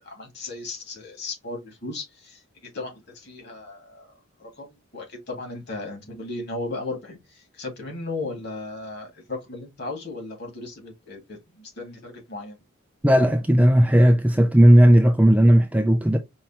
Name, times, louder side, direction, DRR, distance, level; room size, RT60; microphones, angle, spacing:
voice 1, 0.0-4.1 4.4-12.6, left 3 dB, 50° left, 2.2 m, -36 dB
voice 2, 13.0-16.2, equal, 5° right, 0.4 m, -15 dB
5.4 x 3.1 x 2.8 m
head